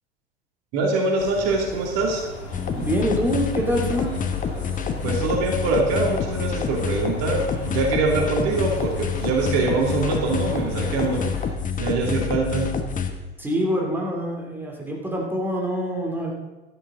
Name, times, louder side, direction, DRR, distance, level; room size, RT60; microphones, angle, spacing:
voice 1, 0.7-2.3 5.0-11.3 11.8-12.7, right 3 dB, 50° right, 1 dB, 2.6 m, -23 dB
sound 1, 1.2-11.5, left 2 dB, 65° left, 3.5 m, -37 dB
sound 2, 2.5-13.1, left 6 dB, 25° left, 1.3 m, -27 dB
voice 2, 2.7-4.1 13.4-16.3, equal, 5° right, -1 dB, 2.9 m, -25 dB
13.0 x 12.5 x 3.8 m, 1.1 s
figure-of-eight pair, 80°, 33 cm